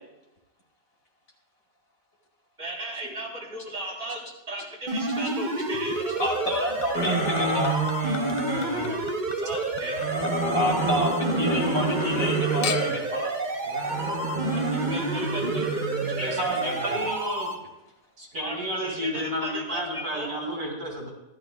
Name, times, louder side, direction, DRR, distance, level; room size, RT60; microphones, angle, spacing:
voice 1, 2.6-6.4 9.4-10.0 14.5-15.7 18.4-20.4, right 1 dB, 55° right, -4 dB, 3.7 m, -36 dB
sound 1, 4.9-17.5, right 2 dB, 35° right, 1.0 m, -30 dB
Chink clink / Liquid, 5.7-11.3 11.6-12.3 12.6-13.2 13.9-14.0, left 8 dB, 90° left, 1.2 m, -40 dB
voice 2, 6.2-7.8 10.5-13.4, equal, 65° left, -1 dB, 3.0 m, -28 dB
sound 2, 6.9-9.0 9.8-13.0 13.7-17.1, right 2 dB, 40° left, 2.2 m, -29 dB
voice 3, 16.2-17.5 18.2-21.1, equal, 75° right, -2 dB, 3.7 m, -31 dB
15.5 x 12.5 x 2.3 m, 0.96 s
omnidirectional pair, 1.5 m